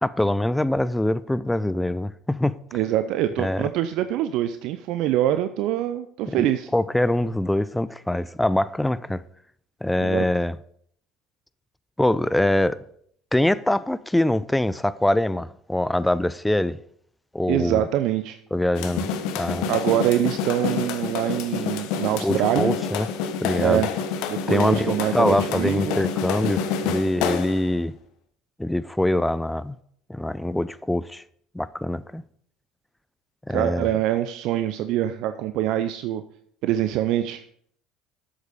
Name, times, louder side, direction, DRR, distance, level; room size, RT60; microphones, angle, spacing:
voice 1, 0.0-2.6 3.4-3.7 6.4-6.5 6.7-9.2 9.8-10.6 12.0-12.8 13.3-16.8 17.3-17.8 18.5-19.1 19.4-19.7 22.2-23.1 23.4-23.8 24.5-27.9 28.6-29.8 30.1-31.2 31.5-32.2 33.5-33.9, left 1 dB, 5° left, 0.5 m, -24 dB
voice 2, 2.7-6.7 10.0-10.2 17.5-18.4 19.7-22.7 23.6-23.9 24.3-26.0 33.5-36.2 36.6-37.4, right 12 dB, 60° right, 0.6 m, -24 dB
sound 1, 18.7-27.7, left 7 dB, 65° left, 1.1 m, -28 dB
11.5 x 8.1 x 5.1 m
hypercardioid pair, 65°, 0 cm